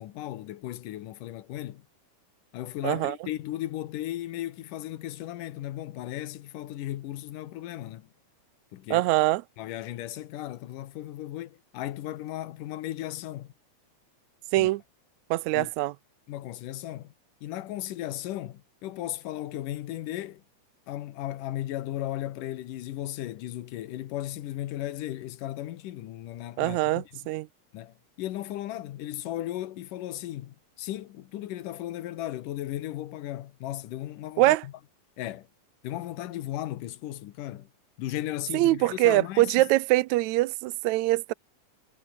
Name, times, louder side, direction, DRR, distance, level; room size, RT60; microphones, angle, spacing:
voice 1, 0.0-1.8 2.5-8.1 8.7-9.1 9.6-13.5 14.6-14.7 15.5-15.7 16.3-17.1 17.4-20.4 20.9-27.2 27.7-34.7 35.2-35.5 35.8-37.7 38.0-39.7, left 14 dB, 85° left, 2.7 m, -36 dB
voice 2, 2.8-3.2 8.9-9.4 14.5-14.8 15.3-15.9 26.6-27.5 34.4-34.6 38.5-41.3, right 18 dB, 75° right, 1.8 m, -23 dB
omnidirectional pair, 3.7 m